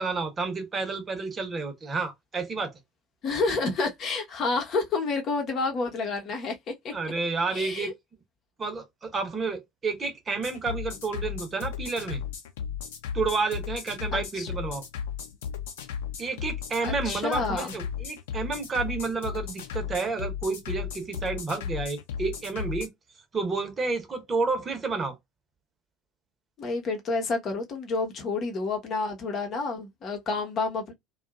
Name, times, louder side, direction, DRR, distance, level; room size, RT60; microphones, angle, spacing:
voice 1, 0.0-2.7 6.9-7.9 8.6-12.2 13.1-14.8 16.2-22.9 23.3-25.2, right 4 dB, 30° right, 1.0 m, -30 dB
voice 2, 3.2-6.9 7.5-7.9 14.1-14.5 16.8-17.7 26.6-30.9, left 3 dB, 45° left, 0.9 m, -29 dB
sound 1, 10.4-22.9, left 8 dB, 70° left, 0.7 m, -35 dB
2.7 x 2.4 x 2.3 m
figure-of-eight pair, 65°, 0 cm